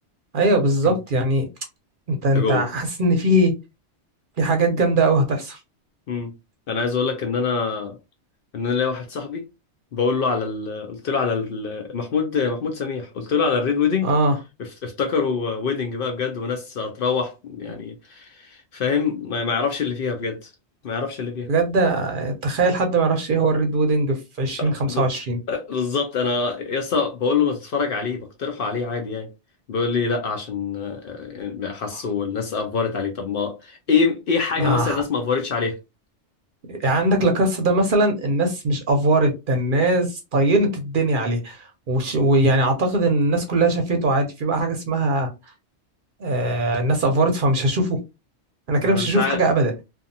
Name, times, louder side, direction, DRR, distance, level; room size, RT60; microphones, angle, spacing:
voice 1, 0.3-1.4 2.1-3.5 4.4-5.6 14.0-14.3 21.5-25.4 34.6-35.0 36.8-45.3 46.2-48.0 48.7-49.7, right 2 dB, 55° right, 0.7 m, -20 dB
voice 2, 6.7-8.0 8.5-9.4 9.9-14.1 14.6-20.5 20.8-21.5 24.6-25.1 25.5-29.3 29.7-35.8 48.8-49.4, left 5 dB, 60° left, 0.7 m, -25 dB
2.7 x 2.4 x 2.6 m
omnidirectional pair, 1.2 m